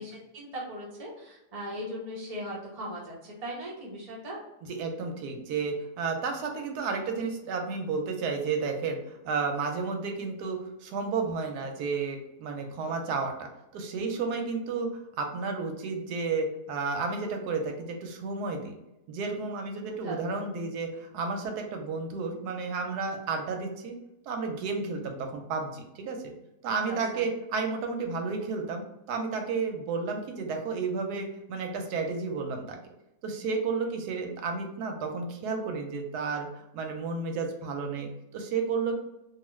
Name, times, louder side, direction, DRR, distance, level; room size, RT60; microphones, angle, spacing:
voice 1, 0.0-4.4 12.8-12.9 20.0-20.4 26.9-27.2, equal, 40° right, -5 dB, 0.5 m, -39 dB
voice 2, 4.6-14.9 15.2-18.7 19.1-23.9 24.3-26.2 26.6-28.8 29.1-32.8 33.2-39.0, right 4 dB, 90° right, 3 dB, 1.2 m, -32 dB
2.6 x 2.3 x 3.0 m, 0.90 s
omnidirectional pair, 1.7 m